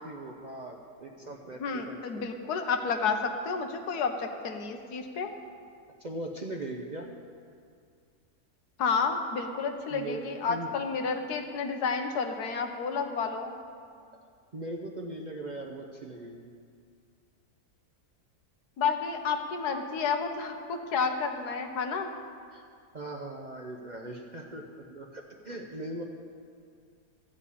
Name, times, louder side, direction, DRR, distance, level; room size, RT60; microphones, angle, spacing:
voice 1, 0.0-2.2 6.0-7.1 9.9-10.7 14.5-16.5 22.5-22.6 22.9-26.0, right 1 dB, 45° right, 1 dB, 0.6 m, -40 dB
voice 2, 1.6-5.3 8.8-13.5 18.8-22.1, left 5 dB, 80° left, 5 dB, 1.5 m, -30 dB
14.0 x 5.3 x 8.3 m, 2.2 s
omnidirectional pair, 1.7 m